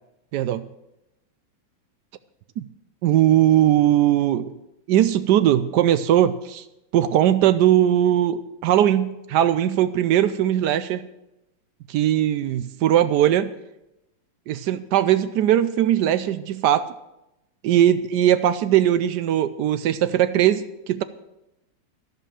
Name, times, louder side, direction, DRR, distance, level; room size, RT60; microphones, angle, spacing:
voice 1, 0.3-0.7 2.6-2.7 3.0-4.5 4.9-6.6 6.9-11.0 11.9-13.5 14.5-16.9 17.6-21.0, right 11 dB, 70° right, 13 dB, 1.0 m, -19 dB
13.5 x 5.3 x 8.6 m, 0.92 s
omnidirectional pair, 2.1 m